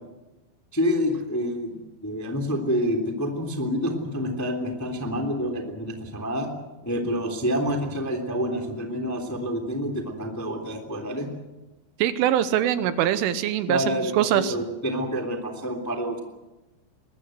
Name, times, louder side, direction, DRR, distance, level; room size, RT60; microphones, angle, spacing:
voice 1, 0.7-6.5 6.8-11.3 13.7-16.2, equal, 5° left, 3 dB, 1.6 m, -28 dB
voice 2, 12.0-13.8 14.2-14.5, right 11 dB, 80° right, 12 dB, 3.4 m, -22 dB
23.5 x 21.0 x 7.8 m, 1.0 s
omnidirectional pair, 5.8 m